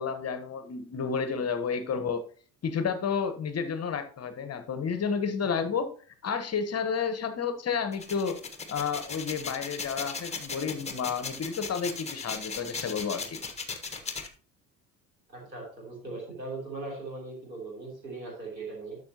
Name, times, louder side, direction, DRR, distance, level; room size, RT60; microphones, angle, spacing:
voice 1, 0.0-2.2 2.6-5.9 6.2-8.4 8.7-13.4, left 6 dB, 30° left, 9 dB, 1.2 m, -31 dB
sound 1, 7.9-14.3, left 5 dB, 15° left, 1.4 m, -37 dB
voice 2, 15.3-19.0, right 3 dB, 90° right, -4 dB, 3.5 m, -39 dB
12.0 x 6.3 x 3.0 m, 0.42 s
figure-of-eight pair, 60°, 49 cm